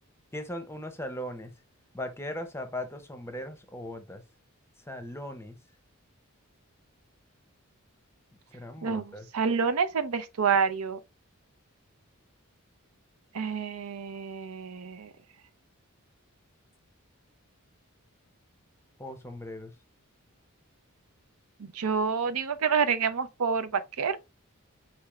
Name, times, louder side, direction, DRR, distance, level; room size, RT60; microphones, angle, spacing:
voice 1, 0.3-1.5 1.9-4.2 4.9-5.6 8.5-9.3 19.0-19.7, left 1 dB, 10° left, 0.6 m, -38 dB
voice 2, 9.3-11.0 13.3-15.1 21.6-24.2, right 6 dB, 90° right, 0.6 m, -28 dB
4.5 x 3.5 x 3.0 m
head